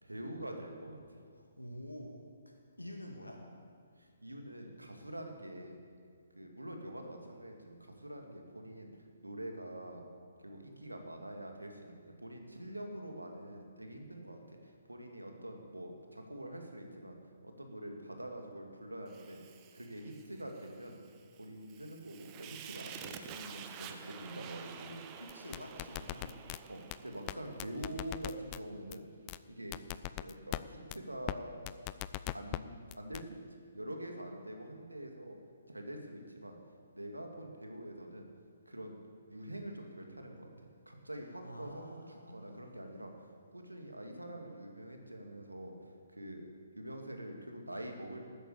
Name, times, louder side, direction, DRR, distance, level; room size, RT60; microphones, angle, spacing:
voice 1, 0.0-1.2 4.0-5.8 6.4-8.9 9.2-10.0 10.4-17.2 17.4-19.4 19.7-21.0 21.4-25.1 26.2-26.4 26.7-29.0 29.4-29.8 30.2-31.6 32.3-35.4 35.7-36.6 36.9-38.3 38.7-39.0 39.3-43.1 43.5-45.8 46.1-46.5 46.8-48.2, right 1 dB, 90° right, 3 dB, 2.3 m, -45 dB
voice 2, 1.3-3.4 25.2-26.3 41.4-42.6, equal, 90° left, 1 dB, 1.9 m, -48 dB
Fire, 19.1-28.3, right 8 dB, 25° right, 0.8 m, -50 dB
sound 1, 25.3-26.6 26.9-27.0 27.3-27.4 27.6-28.6 28.9-29.0 29.3-29.4 29.7-30.6 30.9-31.0 31.3-31.4 31.7-32.6 32.9-33.2, left 18 dB, 25° left, 0.4 m, -38 dB
13.0 x 9.2 x 8.4 m, 2.1 s
figure-of-eight pair, 135°, 0 cm